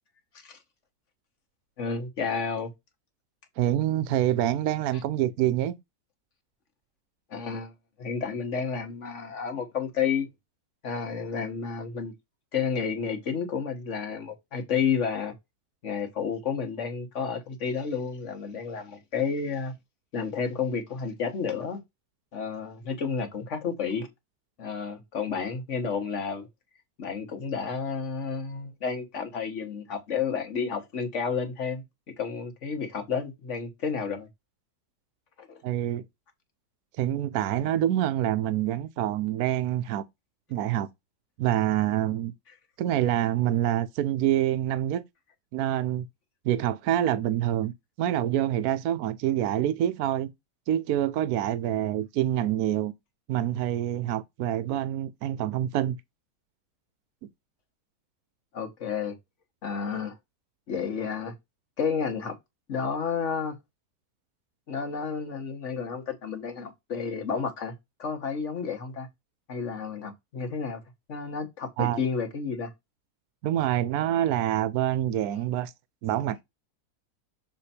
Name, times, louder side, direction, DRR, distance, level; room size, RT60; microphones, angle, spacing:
voice 1, 1.8-2.7 7.3-7.7 8.0-10.3 10.8-12.1 12.5-15.3 15.8-19.7 20.1-21.8 22.3-24.1 24.6-26.5 27.0-31.8 32.2-34.3 35.4-35.6 58.5-59.2 59.6-60.1 60.7-61.3 61.8-62.3 62.7-63.5 64.7-67.7 68.0-69.1 69.5-70.8 71.1-72.7, left 6 dB, 50° left, 1.5 m, -31 dB
voice 2, 3.6-5.8 35.6-36.0 37.0-40.0 40.5-40.9 41.4-42.3 42.8-45.0 45.5-46.1 46.4-47.7 48.0-50.3 50.7-52.9 53.3-56.0 71.8-72.0 73.4-75.7 76.0-76.4, right 12 dB, 75° right, 1.1 m, -26 dB
6.6 x 3.4 x 4.2 m
omnidirectional pair, 1.7 m